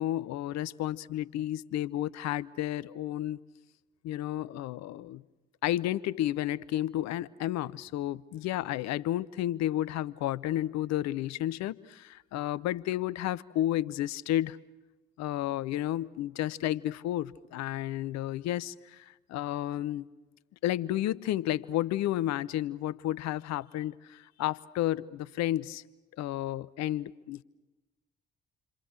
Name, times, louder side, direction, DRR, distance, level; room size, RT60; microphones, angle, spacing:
voice 1, 0.0-3.4 4.0-5.2 5.6-14.6 15.2-20.1 20.6-25.8 26.2-27.4, left 13 dB, 60° left, 19 dB, 0.8 m, -32 dB
29.0 x 25.5 x 6.5 m, 1.1 s
figure-of-eight pair, 45°, 30 cm